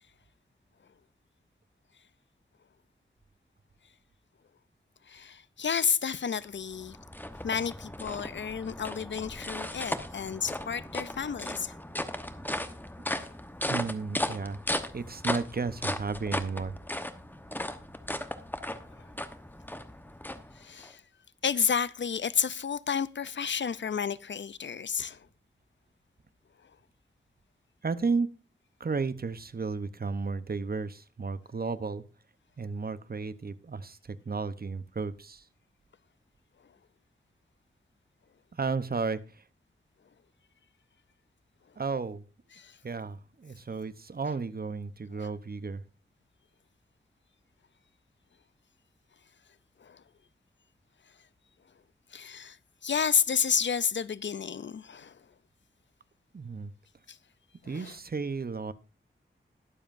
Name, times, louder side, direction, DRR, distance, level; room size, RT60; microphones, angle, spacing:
voice 1, 5.1-7.0 7.4-11.7 20.6-21.0 21.4-25.2 42.5-42.7 45.2-45.3 49.8-50.0 52.1-52.6 52.8-55.1 57.7-57.9, left 7 dB, 60° left, 0.5 m, -31 dB
sound 1, 6.4-20.9, left 1 dB, 10° left, 1.0 m, -36 dB
voice 2, 13.7-14.6 14.9-16.8 27.8-28.3 28.8-32.0 32.6-35.4 38.6-39.2 41.8-42.2 42.8-45.8 56.3-56.7 57.6-58.7, right 4 dB, 45° right, 0.8 m, -33 dB
21.0 x 7.3 x 2.6 m
wide cardioid pair, 75°, 21 cm